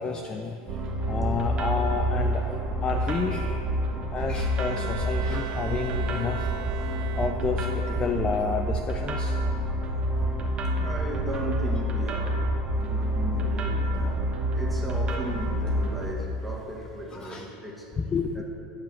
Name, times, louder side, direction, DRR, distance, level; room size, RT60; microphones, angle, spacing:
voice 1, 0.0-3.6 4.1-6.5 7.2-9.4 17.1-17.5 18.0-18.4, left 5 dB, 20° left, 5 dB, 0.5 m, -30 dB
sound 1, 0.7-16.1, right 1 dB, 30° right, 1.2 m, -28 dB
voice 2, 3.9-4.2 6.8-7.0 7.5-7.6 9.9-10.1 10.8-17.9 18.3-18.4, equal, ahead, -2 dB, 1.5 m, -37 dB
Bowed string instrument, 4.1-7.8, right 14 dB, 65° right, 0.6 m, -40 dB
10.0 x 5.5 x 7.5 m, 2.8 s
supercardioid pair, 145°, 4 cm